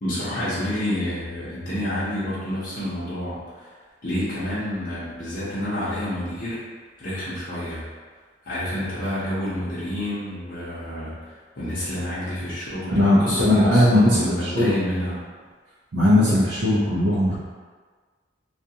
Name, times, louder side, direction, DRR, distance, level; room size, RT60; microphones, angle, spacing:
voice 1, 0.0-3.7 4.0-6.7 7.0-7.9 8.4-15.2, left 1 dB, 45° left, -11 dB, 0.7 m, -29 dB
voice 2, 13.0-14.7 15.9-17.4, left 1 dB, 70° right, -9 dB, 0.5 m, -18 dB
2.4 x 2.3 x 2.7 m, 1.5 s
head